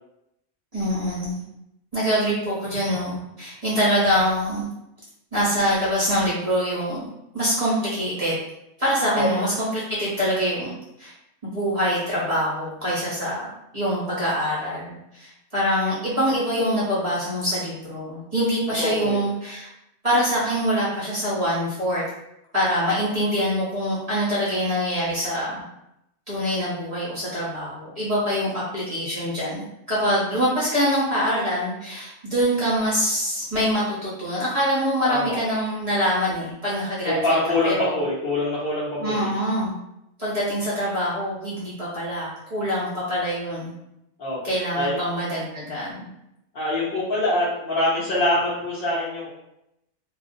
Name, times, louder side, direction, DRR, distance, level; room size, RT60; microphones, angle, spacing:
voice 1, 0.7-1.4 1.9-4.7 5.3-7.1 7.3-8.4 8.8-10.7 11.0-11.1 11.4-13.5 13.7-19.7 20.0-22.0 22.5-25.6 26.3-37.2 37.6-38.0 39.0-39.7 40.2-43.7 44.4-46.1, equal, 40° right, -9 dB, 0.5 m, -24 dB
voice 2, 18.8-19.2 35.0-35.4 37.0-39.3 44.2-45.0 46.5-49.3, left 1 dB, 50° left, -11 dB, 0.7 m, -24 dB
2.4 x 2.1 x 2.5 m, 0.84 s
omnidirectional pair, 1.5 m